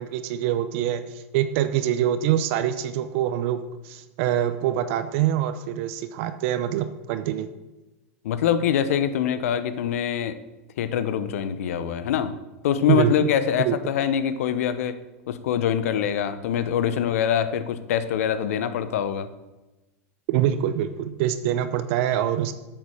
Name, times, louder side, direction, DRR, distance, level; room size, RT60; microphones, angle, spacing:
voice 1, 0.0-7.5 12.9-13.1 13.7-13.8 20.3-22.5, right 11 dB, 60° right, 10 dB, 0.7 m, -25 dB
voice 2, 8.2-10.4 10.8-12.3 12.6-15.0 15.3-19.3, left 9 dB, 70° left, 12 dB, 0.9 m, -24 dB
8.3 x 7.9 x 6.3 m, 1.1 s
hypercardioid pair, 100°, 8 cm